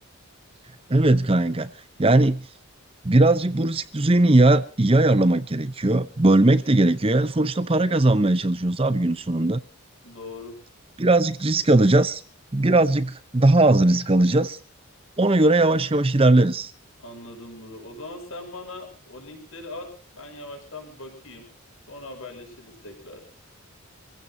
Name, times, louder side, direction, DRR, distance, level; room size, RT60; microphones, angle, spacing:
voice 1, 0.9-1.7 2.0-2.4 3.0-9.6 11.0-12.2 12.5-14.6 15.2-16.7, right 2 dB, 25° right, 0.7 m, -19 dB
voice 2, 10.0-10.6 17.0-21.5 21.9-23.3, left 2 dB, 70° left, 6.1 m, -40 dB
28.0 x 16.0 x 2.7 m
head